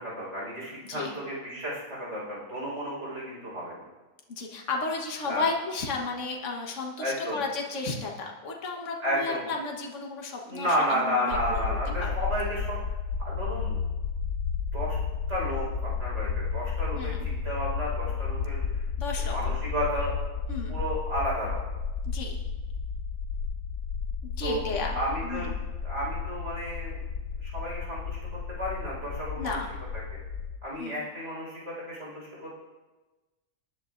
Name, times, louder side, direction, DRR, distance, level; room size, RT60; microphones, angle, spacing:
voice 1, 0.0-3.8 5.2-5.4 7.0-7.4 9.0-9.4 10.5-12.8 13.2-13.7 14.7-15.0 15.3-18.7 19.2-20.1 20.7-21.6 24.4-24.6 24.9-25.5 25.8-27.0 27.4-28.2 28.6-29.6 30.1-30.2 30.6-32.6, equal, 50° right, -5 dB, 5.0 m, -32 dB
voice 2, 4.3-11.7 12.0-12.1 17.0-17.3 19.0-19.4 20.5-20.8 22.1-22.4 24.2-25.0 25.2-25.5 29.4-29.7 30.8-31.1, left 3 dB, 55° left, 0 dB, 1.6 m, -33 dB
sound 1, 11.3-30.6, left 5 dB, 75° left, 1.3 m, -32 dB
19.5 x 10.5 x 2.6 m, 1.2 s
omnidirectional pair, 1.6 m